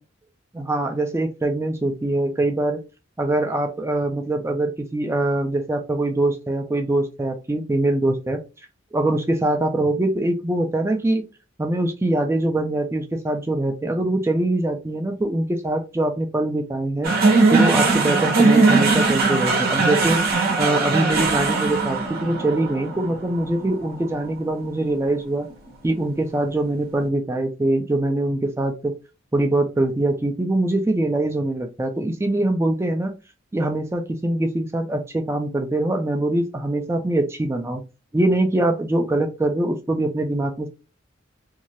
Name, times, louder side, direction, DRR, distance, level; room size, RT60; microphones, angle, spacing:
voice 1, 0.6-2.8 3.2-8.4 8.9-11.3 11.6-17.1 17.5-20.2 20.6-25.5 25.8-28.9 29.3-33.1 33.5-37.8 38.1-40.7, right 1 dB, 15° right, 5 dB, 0.3 m, -23 dB
sound 1, 17.0-25.5, right 3 dB, 50° right, 0.8 m, -20 dB
2.6 x 2.4 x 3.0 m, 0.30 s
head